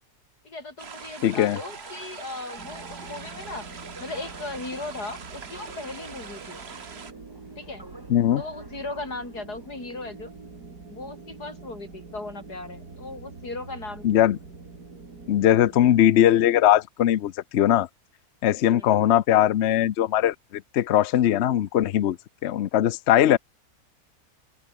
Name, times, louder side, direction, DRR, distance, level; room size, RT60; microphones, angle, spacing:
voice 1, 0.4-3.7 4.0-6.6 7.6-7.9 8.4-10.3 10.9-14.2 18.6-19.0, left 2 dB, 90° left, 6.0 m, -37 dB
sound 1, 0.8-7.1, right 5 dB, 45° right, 1.6 m, -42 dB
voice 2, 1.2-1.6 8.1-8.4 14.0-14.4 15.3-17.9 18.4-22.2 22.4-23.4, left 11 dB, 60° left, 0.8 m, -20 dB
Alarm, 1.4-9.9, right 1 dB, 15° right, 3.2 m, -49 dB
sound 2, 2.6-16.0, right 4 dB, 80° right, 4.0 m, -45 dB
open air
omnidirectional pair, 1.6 m